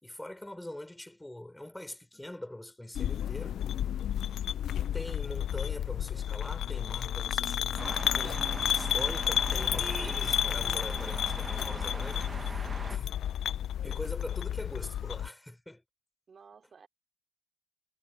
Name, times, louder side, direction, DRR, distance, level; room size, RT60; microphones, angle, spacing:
voice 1, 0.0-3.6 4.9-12.2 12.9-13.1 13.8-15.8, left 1 dB, 5° left, 4.5 m, -43 dB
sound 1, 2.9-15.3, left 10 dB, 65° left, 0.4 m, -31 dB
sound 2, 7.8-13.0, right 3 dB, 20° right, 0.9 m, -40 dB
voice 2, 11.7-12.4 16.3-16.9, right 6 dB, 35° right, 2.6 m, -55 dB
cardioid pair, 135°, 0 cm